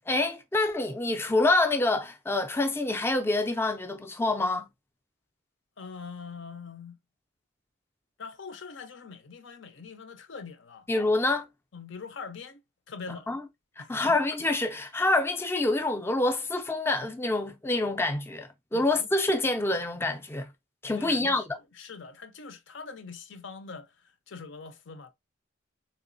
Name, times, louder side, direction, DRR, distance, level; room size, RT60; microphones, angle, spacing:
voice 1, 0.1-4.7 10.9-11.5 13.1-13.4 13.8-20.5 20.8-21.4, left 2 dB, 10° left, 0.4 m, -26 dB
voice 2, 5.8-7.0 8.2-10.9 11.7-12.6 12.9-13.3 13.8-14.2 18.7-19.1 20.9-21.4 21.7-25.1, left 5 dB, 65° left, 0.6 m, -43 dB
3.6 x 3.0 x 2.5 m
head